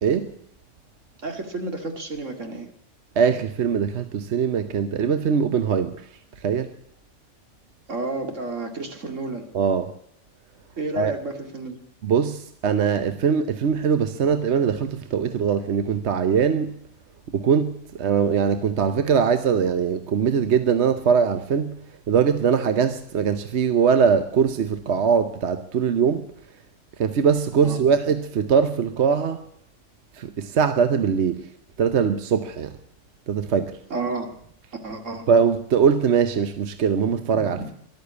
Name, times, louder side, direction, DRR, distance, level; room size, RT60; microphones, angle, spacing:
voice 1, 0.0-0.3 3.2-6.7 9.5-10.0 11.0-11.2 12.0-16.8 17.3-21.8 22.1-26.3 27.0-29.4 30.1-31.5 31.8-32.8 33.3-33.8 35.3-37.7, right 6 dB, 65° right, 1.1 m, -22 dB
voice 2, 1.2-2.7 7.9-9.5 10.8-11.8 27.6-27.8 33.9-34.3 34.8-35.3 37.5-37.7, right 2 dB, 85° right, 2.5 m, -31 dB
13.5 x 12.0 x 8.2 m
omnidirectional pair, 1.3 m